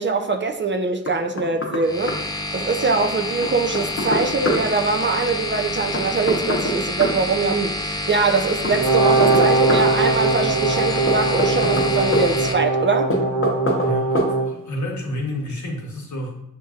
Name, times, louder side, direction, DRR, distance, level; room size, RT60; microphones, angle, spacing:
voice 1, 0.0-2.2 2.5-13.1, right 4 dB, 40° right, 5 dB, 0.4 m, -23 dB
Knock, 1.1-1.8 2.1-2.2 3.4-4.6 5.9-7.2 8.6-9.9 11.1-12.3 13.1-13.9 14.1-14.3, left 1 dB, 45° left, 0.8 m, -24 dB
sound 1, 1.8-12.5, left 2 dB, 10° left, 0.5 m, -28 dB
Brass instrument, 8.7-14.5, right 3 dB, 70° right, 0.7 m, -21 dB
voice 2, 13.8-16.4, left 1 dB, 70° left, -1 dB, 1.0 m, -29 dB
6.3 x 2.6 x 2.4 m, 0.83 s
cardioid pair, 60°, 31 cm